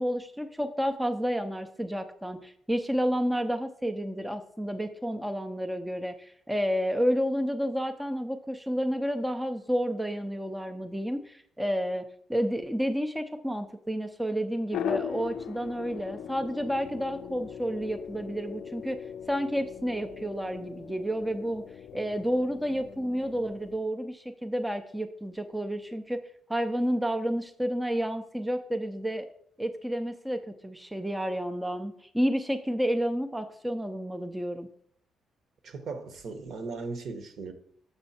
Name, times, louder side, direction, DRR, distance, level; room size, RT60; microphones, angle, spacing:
voice 1, 0.0-19.0 19.3-21.6 21.9-26.2 26.5-29.3 29.6-34.7, equal, 5° right, 0.4 m, -30 dB
sound 1, 14.7-23.8, left 9 dB, 75° left, 0.4 m, -39 dB
voice 2, 35.6-37.5, right 4 dB, 60° right, 1.0 m, -37 dB
6.9 x 5.5 x 4.2 m
cardioid pair, 130°, 0 cm